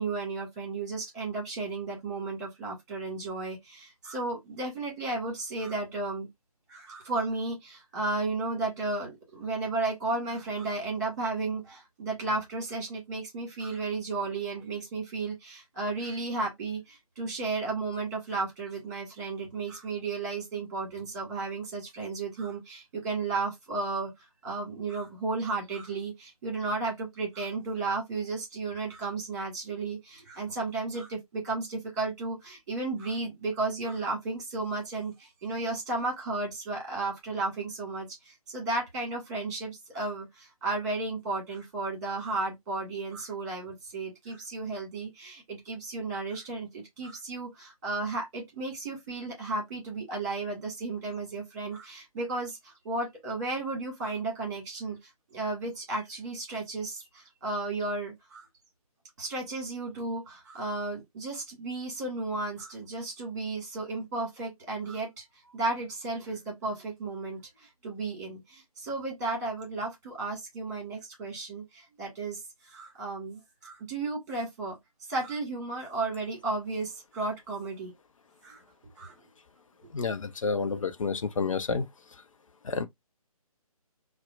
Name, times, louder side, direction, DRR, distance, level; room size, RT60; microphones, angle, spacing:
voice 1, 0.0-6.3 6.7-24.1 24.4-55.0 55.3-58.5 59.2-65.2 65.5-74.8 75.1-77.9 78.4-78.6 79.0-79.1, right 3 dB, 30° right, 1.8 m, -34 dB
voice 2, 79.9-81.9 82.6-82.8, left 4 dB, 60° left, 0.5 m, -29 dB
4.1 x 2.1 x 2.3 m
figure-of-eight pair, 145°, 19 cm